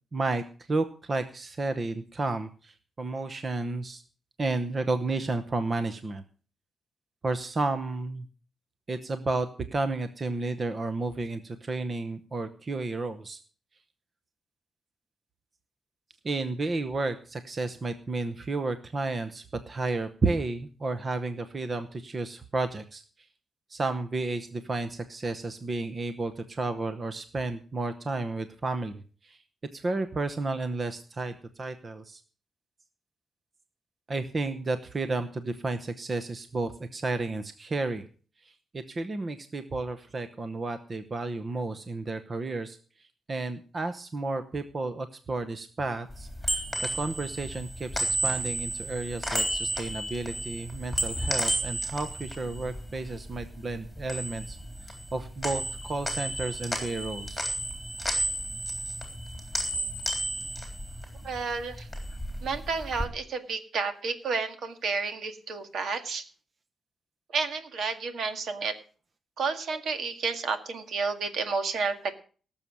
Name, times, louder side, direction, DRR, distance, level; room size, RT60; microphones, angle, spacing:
voice 1, 0.1-0.4 0.7-4.0 4.4-6.2 7.2-8.3 8.9-13.4 16.2-23.0 23.7-29.4 29.7-32.2 34.1-38.1 38.4-42.8 43.3-46.6 46.9-54.6 55.1-57.4, right 3 dB, 25° right, 9 dB, 0.9 m, -32 dB
sound 1, 46.1-53.4 53.7-55.1 55.4-61.4 61.7-63.1, right 1 dB, ahead, 3.6 m, -32 dB
voice 2, 61.2-61.9 62.4-66.2 67.3-68.7 69.4-72.1, right 4 dB, 60° right, 8 dB, 1.9 m, -31 dB
18.0 x 7.2 x 6.2 m, 0.40 s
wide cardioid pair, 175°, 0 cm